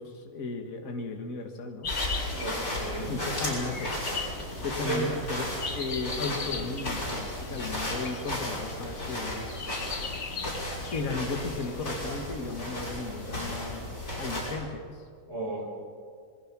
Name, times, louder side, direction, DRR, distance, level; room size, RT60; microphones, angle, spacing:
voice 1, 0.0-1.9 3.1-4.0 4.6-9.5 10.9-13.8 14.2-15.0, left 3 dB, 65° left, 4 dB, 2.0 m, -35 dB
sound 1, 1.8-12.2, left 4 dB, 40° left, 1.5 m, -39 dB
sound 2, 1.9-14.6, left 1 dB, 90° left, 6.7 m, -35 dB
voice 2, 2.3-3.2 4.8-5.1 5.3-5.5 15.3-15.7, right 3 dB, 45° right, -1 dB, 5.8 m, -34 dB
26.5 x 21.0 x 6.1 m, 2.1 s
omnidirectional pair, 1.6 m